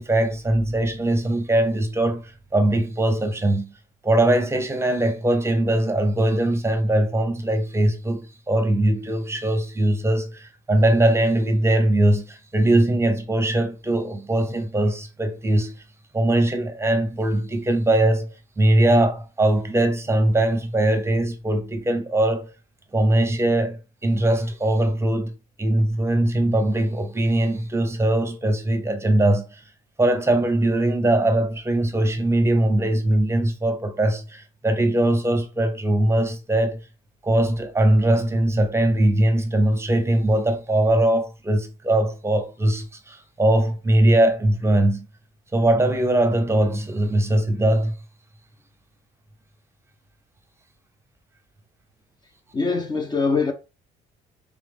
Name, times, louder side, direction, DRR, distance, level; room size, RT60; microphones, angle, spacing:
voice 1, 0.0-3.7 4.0-15.7 16.1-18.3 18.6-22.5 22.9-25.3 25.6-29.6 30.0-36.8 37.2-45.1 45.5-47.9, right 1 dB, 15° right, 0.8 m, -21 dB
voice 2, 52.5-53.5, left 4 dB, 25° left, 0.6 m, -23 dB
3.5 x 3.3 x 3.5 m
cardioid pair, 110°, 17 cm